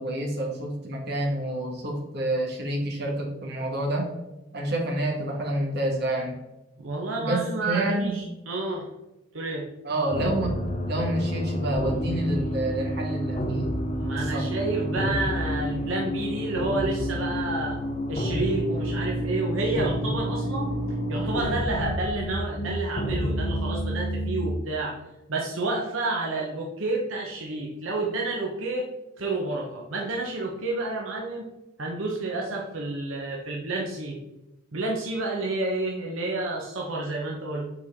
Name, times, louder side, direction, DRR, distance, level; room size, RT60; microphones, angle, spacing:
voice 1, 0.0-4.1 4.5-6.4 7.2-8.2 9.8-10.6 10.9-13.7 14.1-14.4, right 1 dB, 55° right, -1 dB, 1.6 m, -28 dB
voice 2, 6.8-8.9 9.3-9.7 13.9-17.8 18.1-20.7 21.1-25.0 25.3-28.8 29.2-31.4 31.8-34.2 34.7-37.6, right 2 dB, 80° right, -1 dB, 1.0 m, -30 dB
sound 1, 10.1-24.5, equal, 35° left, 0.7 m, -29 dB
7.0 x 4.6 x 3.6 m, 0.96 s
head